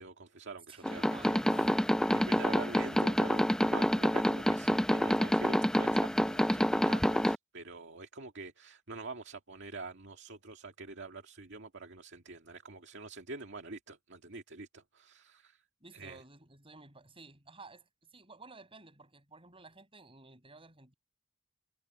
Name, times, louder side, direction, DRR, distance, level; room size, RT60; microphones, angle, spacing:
voice 1, 0.0-1.4 2.1-15.6 15.9-16.2, right 3 dB, 60° right, 2.1 m, -46 dB
voice 2, 0.7-1.9 15.8-20.9, right 3 dB, 25° right, 6.7 m, -53 dB
sound 1, 0.8-7.4, equal, 5° left, 0.8 m, -28 dB
head